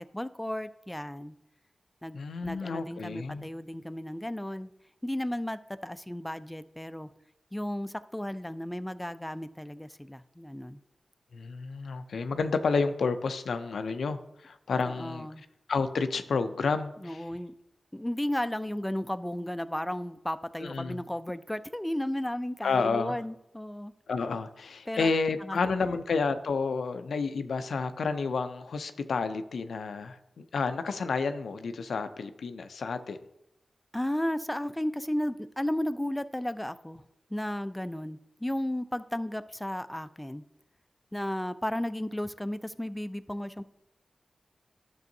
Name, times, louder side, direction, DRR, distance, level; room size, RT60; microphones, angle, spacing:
voice 1, 0.0-1.3 2.0-2.2 2.4-4.7 5.0-7.1 7.5-10.8 14.8-15.4 17.0-17.5 17.9-23.9 24.9-25.1 25.4-25.8 33.9-37.0 37.3-40.4 41.1-43.6, left 1 dB, 10° left, 12 dB, 0.4 m, -34 dB
voice 2, 2.1-3.5 11.3-15.3 15.7-17.2 20.6-21.0 22.6-23.2 24.1-33.2, left 4 dB, 80° left, 9 dB, 0.4 m, -30 dB
10.5 x 6.1 x 2.7 m, 0.85 s
cardioid pair, 40°, 0 cm